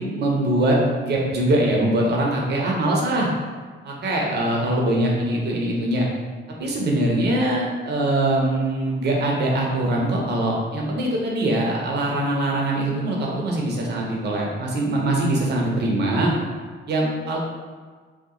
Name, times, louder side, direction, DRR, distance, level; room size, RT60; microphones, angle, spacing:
voice 1, 0.0-3.3 3.8-6.1 6.6-16.3 16.9-17.4, right 1 dB, 55° right, -2 dB, 0.8 m, -22 dB
2.8 x 2.4 x 3.7 m, 1.5 s
cardioid pair, 90°, 20 cm